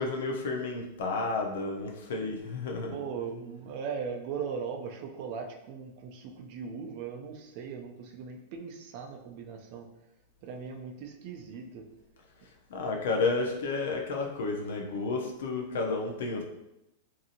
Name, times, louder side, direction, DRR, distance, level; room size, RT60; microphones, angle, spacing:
voice 1, 0.0-2.9 12.7-16.4, left 3 dB, 75° left, 1 dB, 0.5 m, -31 dB
voice 2, 2.9-9.9 10.4-11.8, right 6 dB, 40° right, 2 dB, 0.4 m, -39 dB
2.7 x 2.5 x 2.7 m, 0.89 s
supercardioid pair, 170°, 0 cm